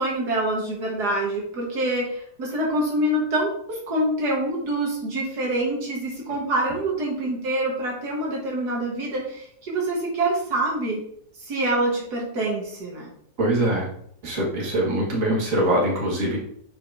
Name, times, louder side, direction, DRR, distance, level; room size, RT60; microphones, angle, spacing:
voice 1, 0.0-11.0 11.4-13.1, right 1 dB, 80° right, -2 dB, 2.0 m, -26 dB
voice 2, 13.4-13.9 14.2-16.4, right 1 dB, 55° right, -3 dB, 2.0 m, -23 dB
8.2 x 4.8 x 2.7 m, 0.66 s
omnidirectional pair, 1.7 m